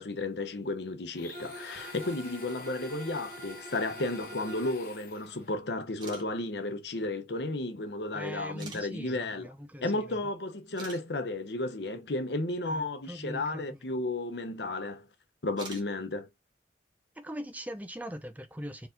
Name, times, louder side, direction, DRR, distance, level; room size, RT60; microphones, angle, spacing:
voice 1, 0.0-9.5 9.8-15.1 15.4-16.3, left 2 dB, 80° left, 0.9 m, -33 dB
Domestic sounds home sounds, 1.1-5.6, left 4 dB, 50° left, 1.2 m, -49 dB
Bowed string instrument, 1.3-4.9, right 2 dB, 55° right, 2.2 m, -46 dB
sound 1, 5.9-6.2 7.3-7.4 8.6-8.8 10.3-10.4 10.8-11.0 13.7-13.8 15.5-15.9, right 4 dB, 25° right, 1.5 m, -45 dB
voice 2, 8.1-10.2 12.7-13.9 17.1-18.9, equal, 10° right, 0.7 m, -41 dB
4.7 x 4.0 x 2.7 m
head